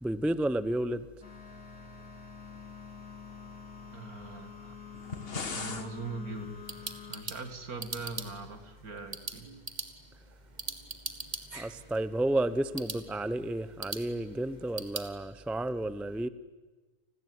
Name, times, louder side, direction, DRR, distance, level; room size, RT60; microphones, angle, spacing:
voice 1, 0.0-1.1 11.5-16.3, right 1 dB, ahead, 15 dB, 0.4 m, -31 dB
sound 1, 1.2-7.2, left 6 dB, 70° left, 3.5 m, -47 dB
voice 2, 3.9-4.8 5.5-6.6 7.1-9.5, right 3 dB, 70° right, 9 dB, 2.8 m, -41 dB
sound 2, 4.9-5.9, left 4 dB, 40° left, 1.7 m, -37 dB
sound 3, 6.3-15.1, right 3 dB, 30° right, 1.9 m, -43 dB
30.0 x 21.0 x 9.5 m, 1.3 s
omnidirectional pair, 1.6 m